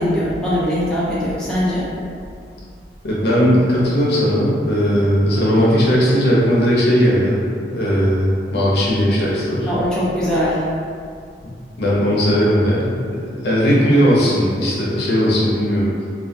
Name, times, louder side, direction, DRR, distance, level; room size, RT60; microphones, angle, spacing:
voice 1, 0.0-1.9 9.7-10.6, equal, 5° left, -10 dB, 0.4 m, -21 dB
voice 2, 3.0-7.4 7.7-9.7 11.8-13.0 13.4-16.1, equal, 65° left, -6 dB, 0.6 m, -17 dB
2.2 x 2.2 x 2.6 m, 2.2 s
head